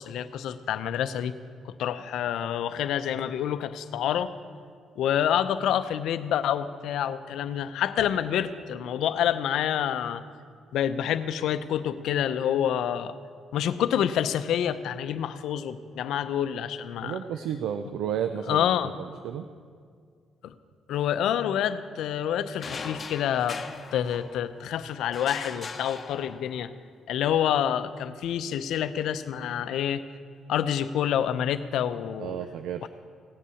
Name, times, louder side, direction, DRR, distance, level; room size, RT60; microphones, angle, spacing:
voice 1, 0.0-1.3 1.6-4.3 5.0-10.2 10.7-13.1 13.5-17.2 18.5-18.9 20.4-20.5 20.9-23.6 23.9-26.7 27.1-30.0 30.5-32.3 32.8-32.9, left 10 dB, 80° left, 12 dB, 0.6 m, -27 dB
voice 2, 17.0-19.5 32.2-32.9, right 9 dB, 85° right, 8 dB, 0.5 m, -32 dB
sound 1, 22.6-24.6 25.1-26.7, left 4 dB, 35° left, 1.0 m, -39 dB
17.0 x 8.4 x 7.1 m, 2.1 s
cardioid pair, 90°, 0 cm